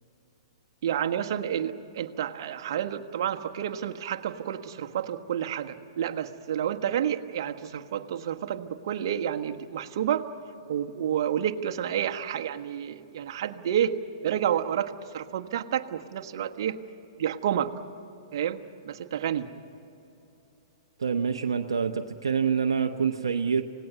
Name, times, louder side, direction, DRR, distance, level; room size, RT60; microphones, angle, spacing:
voice 1, 0.8-10.3 10.7-14.0 14.2-16.8 17.2-17.7 18.3-18.6 18.8-19.5, right 9 dB, 60° right, 6 dB, 1.4 m, -29 dB
voice 2, 21.0-23.6, right 6 dB, 80° right, 5 dB, 0.9 m, -26 dB
28.0 x 18.5 x 9.5 m, 2.9 s
hypercardioid pair, 115°, 3 cm